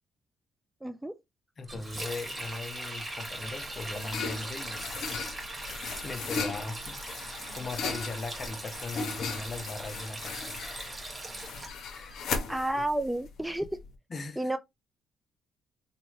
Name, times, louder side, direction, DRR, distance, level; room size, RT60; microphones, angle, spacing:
voice 1, 0.8-1.1 12.5-13.6 14.4-14.6, right 1 dB, 5° right, 0.3 m, -30 dB
voice 2, 1.6-5.2 6.0-11.2 11.9-12.4 12.7-12.8 14.1-14.5, left 3 dB, 40° left, 0.6 m, -40 dB
Sink (filling or washing), 1.7-11.7, right 1 dB, 25° right, 1.1 m, -40 dB
sound 1, 3.7-13.9, left 5 dB, 75° left, 0.7 m, -38 dB
3.0 x 2.2 x 3.0 m
cardioid pair, 90°, 0 cm